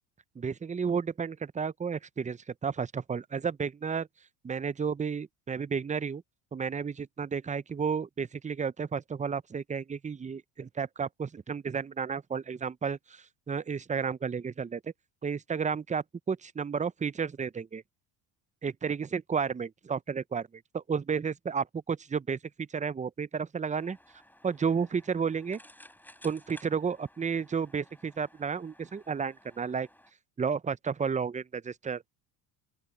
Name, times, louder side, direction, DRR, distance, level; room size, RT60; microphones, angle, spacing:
voice 1, 0.3-4.1 4.4-6.2 6.5-14.9 15.2-17.8 18.6-24.0 24.4-25.6 26.2-29.9 30.4-32.0, right 6 dB, 15° right, 0.6 m, -32 dB
sound 1, 23.8-30.1, left 1 dB, 5° left, 7.5 m, -57 dB
open air
supercardioid pair, 80°, 50 cm